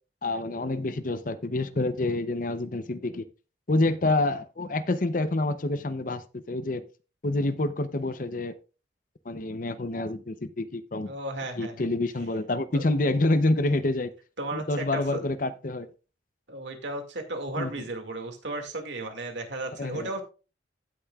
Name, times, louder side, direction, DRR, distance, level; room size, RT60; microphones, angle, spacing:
voice 1, 0.2-3.3 3.7-6.8 7.2-8.6 9.3-11.1 11.6-14.1 14.5-15.9 17.6-17.7 19.8-20.1, left 2 dB, 45° left, 0.7 m, -27 dB
voice 2, 11.0-11.9 12.7-12.8 14.4-15.2 16.5-20.2, right 2 dB, 80° right, 2.1 m, -34 dB
16.0 x 6.2 x 2.4 m
head